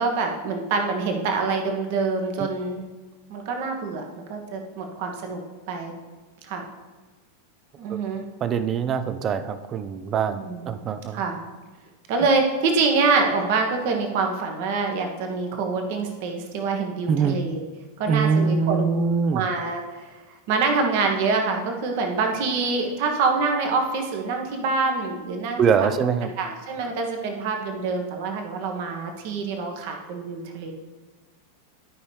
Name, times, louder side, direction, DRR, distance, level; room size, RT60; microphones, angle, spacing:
voice 1, 0.0-2.8 3.3-5.4 5.7-5.9 6.4-6.6 7.8-8.2 10.3-10.8 11.1-11.4 12.1-17.6 18.0-20.2 20.5-25.9 26.2-30.7, right 4 dB, 50° right, 3 dB, 1.3 m, -26 dB
voice 2, 8.4-11.2 17.1-17.4 18.1-19.5 25.6-26.3, right 6 dB, 30° right, 12 dB, 0.5 m, -23 dB
12.0 x 5.4 x 3.3 m, 1.3 s
figure-of-eight pair, 90°, 0 cm